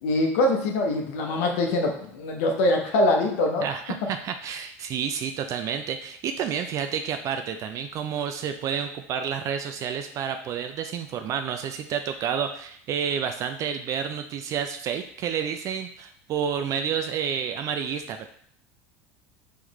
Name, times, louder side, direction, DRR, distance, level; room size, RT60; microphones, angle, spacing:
voice 1, 0.0-3.7, left 1 dB, 75° left, 2 dB, 0.7 m, -23 dB
voice 2, 3.6-18.3, right 7 dB, 45° right, 7 dB, 0.3 m, -30 dB
3.7 x 3.1 x 3.0 m, 0.63 s
hypercardioid pair, 90°, 7 cm